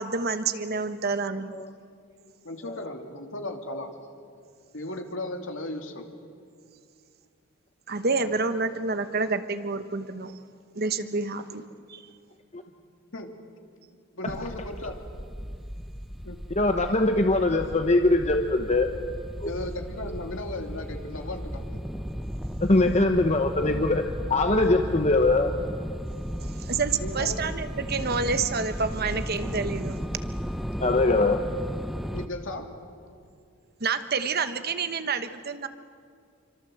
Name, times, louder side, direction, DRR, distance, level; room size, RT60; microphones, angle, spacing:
voice 1, 0.0-1.5 7.9-10.3 10.7-11.6 11.9-12.0 14.3-14.4 26.6-30.0 33.8-35.7, right 4 dB, 50° right, 10 dB, 1.1 m, -28 dB
voice 2, 2.4-3.9 4.7-6.0 13.1-13.3 14.1-15.0 16.2-16.4 19.4-21.8 26.9-27.4 32.1-32.7, left 1 dB, 65° left, 4 dB, 2.7 m, -36 dB
sound 1, 14.3-32.3, equal, ahead, 0.8 m, -35 dB
voice 3, 16.5-18.9 19.4-19.5 22.6-25.5 30.8-31.4, left 2 dB, 30° left, 5 dB, 1.0 m, -22 dB
27.0 x 25.0 x 7.8 m, 2.2 s
head